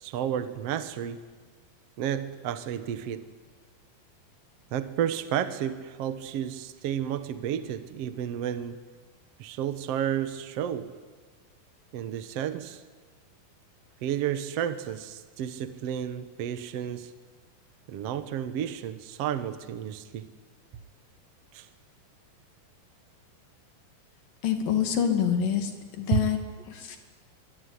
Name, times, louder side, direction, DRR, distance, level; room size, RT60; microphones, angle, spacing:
voice 1, 0.0-1.2 2.0-3.3 4.7-8.8 9.4-10.9 11.9-12.8 14.0-17.1 17.9-20.3 21.5-21.7 26.1-26.3, right 9 dB, 65° right, 10 dB, 1.5 m, -31 dB
voice 2, 24.4-25.7 26.0-26.4 26.9-27.0, left 8 dB, 65° left, 5 dB, 4.2 m, -25 dB
25.0 x 24.0 x 9.8 m, 1.4 s
omnidirectional pair, 4.2 m